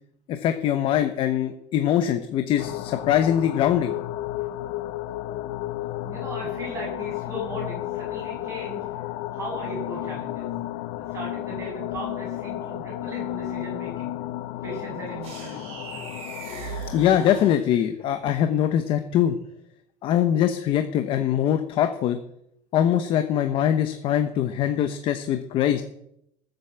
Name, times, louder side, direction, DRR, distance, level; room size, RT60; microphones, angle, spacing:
voice 1, 0.3-3.9 16.9-19.3 20.0-22.2 22.7-25.8, left 10 dB, 40° left, 8 dB, 0.9 m, -22 dB
sound 1, 2.6-17.6, left 15 dB, 70° left, 0.8 m, -33 dB
voice 2, 6.0-9.0 9.3-10.5 11.0-14.1 14.6-16.1 16.7-16.8, right 1 dB, 20° right, -2 dB, 8.0 m, -37 dB
sound 2, 15.2-18.1, right 6 dB, 45° right, 4.9 m, -40 dB
19.0 x 8.0 x 8.0 m, 0.78 s
cardioid pair, 180°, 14 cm